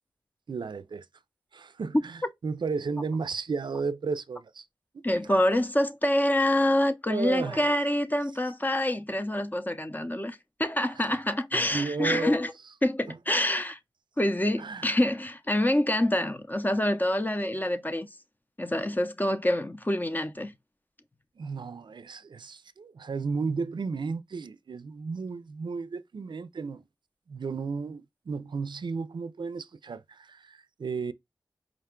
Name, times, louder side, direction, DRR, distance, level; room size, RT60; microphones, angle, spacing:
voice 1, 0.5-1.1 1.5-4.7 4.9-5.0 7.1-7.7 11.0-11.2 11.5-12.4 13.1-13.2 14.6-14.9 21.4-26.8 27.3-31.1, right 4 dB, 70° right, 0.4 m, -34 dB
voice 2, 5.0-12.5 12.8-13.8 14.2-18.1 18.6-20.5, left 1 dB, 20° left, 0.6 m, -26 dB
4.9 x 2.2 x 3.6 m
wide cardioid pair, 55°, 8 cm